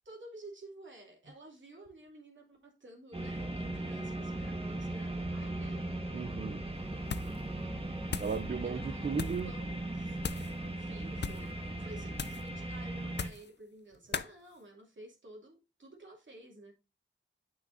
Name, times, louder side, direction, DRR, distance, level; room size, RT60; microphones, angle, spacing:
voice 1, 0.0-5.9 8.6-16.7, right 1 dB, 65° right, 2.6 m, -52 dB
sound 1, 3.1-13.3, right 1 dB, 30° right, 1.7 m, -38 dB
voice 2, 6.1-6.6 8.2-9.5 14.1-14.2, right 5 dB, 50° right, 0.6 m, -36 dB
sound 2, 7.0-7.4 7.7-8.4 9.1-9.5 10.2-10.5 11.1-11.5 12.1-12.5 13.1-13.5 14.1-14.3, left 6 dB, 55° left, 0.5 m, -38 dB
9.2 x 5.8 x 2.7 m
cardioid pair, 55°, 21 cm